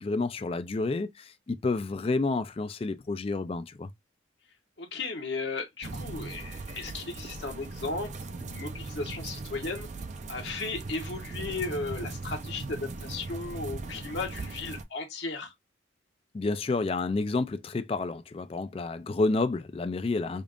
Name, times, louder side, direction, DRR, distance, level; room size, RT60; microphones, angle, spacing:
voice 1, 0.0-3.9 16.3-20.4, left 3 dB, 30° left, 0.3 m, -30 dB
voice 2, 4.8-9.9 10.3-15.5, left 3 dB, 60° left, 0.8 m, -35 dB
sound 1, 5.8-14.8, right 3 dB, 35° right, 0.4 m, -39 dB
5.1 x 2.4 x 2.4 m
head